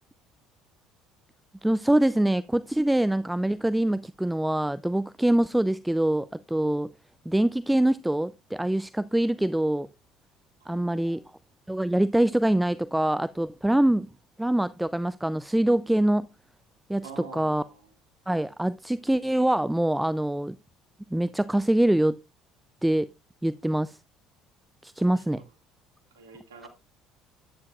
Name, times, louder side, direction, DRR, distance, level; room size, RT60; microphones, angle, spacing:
voice 1, 1.6-6.9 7.3-9.9 10.7-11.2 11.7-14.1 14.4-16.3 16.9-17.0 17.3-17.6 18.3-20.6 21.1-22.2 22.8-23.1 23.4-24.0 24.8-25.4, right 1 dB, 5° right, 0.4 m, -24 dB
voice 2, 10.6-11.3 17.0-17.9 25.2-25.5 26.1-26.7, right 4 dB, 80° right, 2.1 m, -47 dB
11.0 x 9.7 x 2.4 m
figure-of-eight pair, 60°, 0 cm